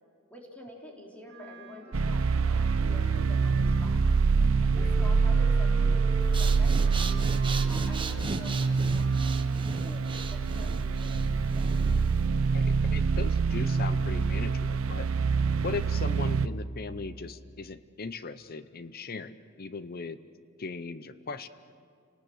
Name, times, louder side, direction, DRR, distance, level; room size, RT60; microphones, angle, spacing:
voice 1, 0.3-4.0 4.4-6.1 6.4-7.2 7.5-9.1 9.7-11.7, equal, 5° left, -1 dB, 3.7 m, -48 dB
Wind instrument woodwind instrument, 1.2-4.2 4.7-9.6, right 2 dB, 55° right, 4.5 m, -45 dB
sound 1, 1.9-16.5, right 4 dB, 85° right, 0.6 m, -26 dB
Breathing, 6.2-12.3, right 3 dB, 25° right, 1.1 m, -38 dB
voice 2, 12.5-15.1 15.6-20.2 20.6-21.5, left 4 dB, 45° left, 13 dB, 0.7 m, -38 dB
30.0 x 19.0 x 7.9 m, 2.4 s
head